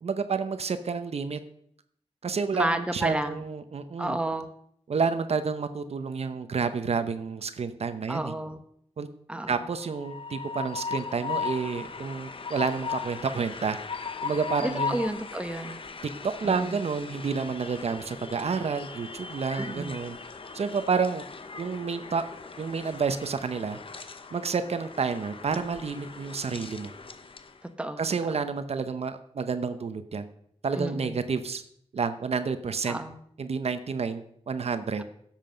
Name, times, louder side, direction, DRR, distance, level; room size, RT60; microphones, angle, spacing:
voice 1, 0.0-1.4 2.2-4.2 4.9-8.3 9.0-9.1 9.5-13.8 14.2-15.0 16.0-20.2 20.5-21.2 21.6-22.2 22.6-23.8 24.3-26.9 28.0-30.3 30.6-31.6 31.9-33.0 33.4-35.0, right 5 dB, 75° right, 10 dB, 0.9 m, -29 dB
voice 2, 2.5-3.4 4.0-4.5 8.1-8.6 9.3-9.6 14.6-15.8 16.4-16.8 19.6-19.9 27.8-28.0 30.8-31.2 32.9-33.2, right 1 dB, 10° right, 7 dB, 1.1 m, -31 dB
Train, 9.8-27.6, left 5 dB, 55° left, 1.0 m, -38 dB
16.5 x 7.5 x 5.1 m, 0.67 s
wide cardioid pair, 115°, 11 cm